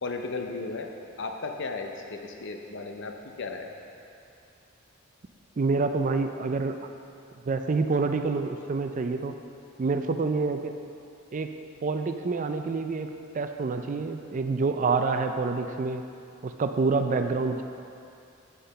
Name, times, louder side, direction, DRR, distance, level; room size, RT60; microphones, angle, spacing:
voice 1, 0.0-0.9 1.2-3.7, left 3 dB, 65° left, 4 dB, 0.7 m, -35 dB
voice 2, 5.6-6.7 7.5-9.3 9.8-10.7 11.3-11.5 11.8-13.1 13.3-16.0 16.4-17.6, right 4 dB, 40° right, 7 dB, 0.4 m, -27 dB
8.5 x 5.8 x 5.3 m, 2.6 s
head